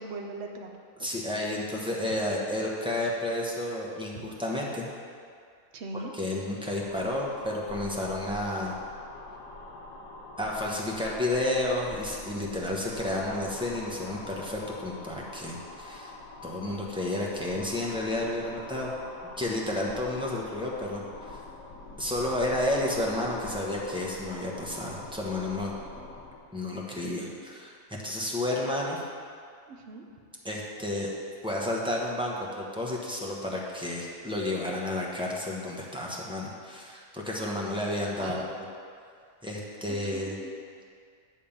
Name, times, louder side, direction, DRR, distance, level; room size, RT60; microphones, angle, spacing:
voice 1, 0.0-1.2 4.1-4.3 5.7-6.1 29.7-30.0 38.2-38.5 40.1-40.5, right 3 dB, 55° right, 3 dB, 1.0 m, -40 dB
voice 2, 1.0-4.9 6.1-8.8 10.4-16.1 16.4-18.9 19.4-21.0 21.3-21.4 22.0-25.7 26.5-29.0 30.4-31.1 31.4-38.6 39.4-40.3, left 1 dB, 5° right, -4 dB, 0.9 m, -31 dB
sound 1, 6.6-26.5, left 3 dB, 70° left, 1.3 m, -44 dB
10.0 x 3.6 x 7.1 m, 2.2 s
omnidirectional pair, 1.6 m